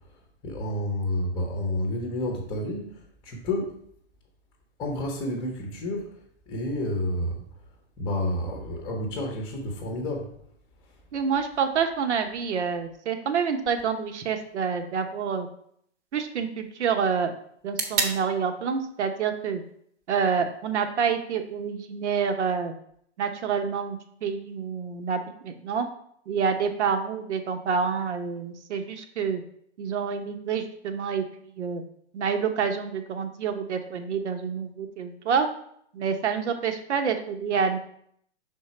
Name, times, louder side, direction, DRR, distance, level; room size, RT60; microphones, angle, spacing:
voice 1, 0.4-2.9 3.2-3.7 4.8-6.1 6.5-7.4 8.0-10.3, left 1 dB, 10° left, 1 dB, 0.8 m, -30 dB
voice 2, 11.1-15.5 16.1-17.3 17.6-19.6 20.1-22.7 23.2-25.9 26.3-29.4 29.8-31.2 31.6-31.8 32.1-35.5 35.9-37.8, right 6 dB, 80° right, 7 dB, 1.0 m, -27 dB
sound 1, 13.7-21.6, right 4 dB, 30° right, 0.9 m, -38 dB
6.2 x 3.7 x 4.3 m, 0.66 s
hypercardioid pair, 150°, 34 cm